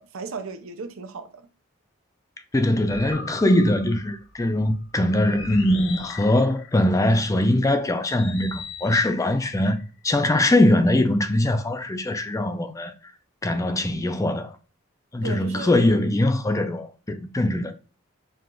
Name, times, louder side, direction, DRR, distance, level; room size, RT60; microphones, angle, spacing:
voice 1, 0.0-1.5 15.2-16.0, right 4 dB, 75° right, 0.6 m, -35 dB
voice 2, 2.5-9.8 10.0-12.9 13.4-14.6 15.1-17.7, left 1 dB, 15° left, 0.4 m, -22 dB
sound 1, 2.9-7.2 8.1-10.5, left 4 dB, 60° left, 0.7 m, -41 dB
4.7 x 2.5 x 3.7 m
head